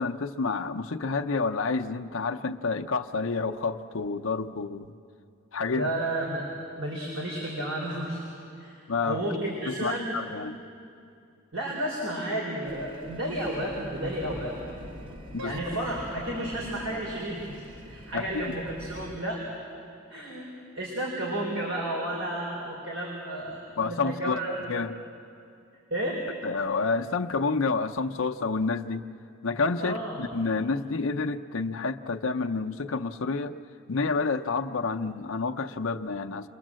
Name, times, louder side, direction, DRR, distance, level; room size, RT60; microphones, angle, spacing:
voice 1, 0.0-5.0 5.5-5.9 8.9-9.2 9.7-10.6 15.3-15.6 18.1-18.4 23.8-24.4 24.7-24.9 26.4-29.1 29.4-33.5 33.9-36.5, left 4 dB, 75° left, 5 dB, 0.7 m, -29 dB
voice 2, 5.7-6.5 6.8-8.2 8.6-10.2 11.5-14.5 15.4-19.4 20.1-20.5 20.7-24.6 25.9-26.2 29.8-30.2, right 1 dB, 70° right, -3 dB, 4.7 m, -32 dB
sound 1, 12.6-19.2, equal, 25° right, 1.3 m, -45 dB
Piano, 15.4-18.4, right 4 dB, 90° right, 1.4 m, -47 dB
29.5 x 23.5 x 7.6 m, 2.6 s
head